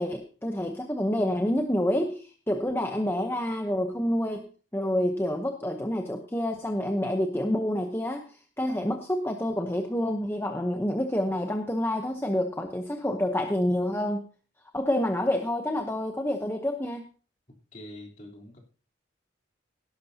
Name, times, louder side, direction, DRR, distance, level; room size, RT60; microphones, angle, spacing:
voice 1, 0.0-4.5 4.7-14.2 14.7-17.0, left 1 dB, 10° left, 3 dB, 0.9 m, -28 dB
voice 2, 17.7-18.6, left 1 dB, 40° left, -2 dB, 3.6 m, -45 dB
17.5 x 11.5 x 2.8 m, 0.39 s
head